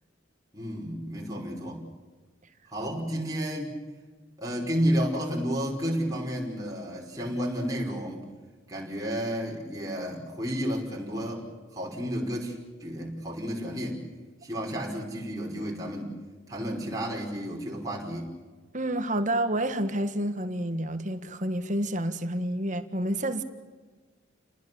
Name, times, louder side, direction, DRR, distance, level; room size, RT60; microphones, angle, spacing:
voice 1, 0.5-1.8 2.7-3.7 4.4-8.3 8.7-11.5 11.7-12.6 12.8-14.0 14.4-16.1 16.5-18.3, equal, 20° right, 5.2 m, -31 dB
voice 2, 18.7-23.4, right 1 dB, 40° right, 1.6 m, -29 dB
29.5 x 20.0 x 7.0 m
head